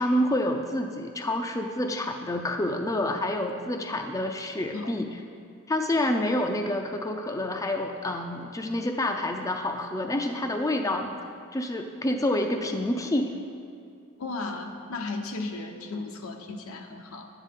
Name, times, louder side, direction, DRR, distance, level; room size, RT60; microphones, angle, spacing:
voice 1, 0.0-5.1 5.7-11.1 11.5-13.4, left 1 dB, 15° left, 4 dB, 0.4 m, -28 dB
voice 2, 4.7-5.0 14.2-17.3, left 3 dB, 85° left, 4 dB, 0.8 m, -35 dB
11.5 x 8.9 x 3.6 m, 2.4 s
head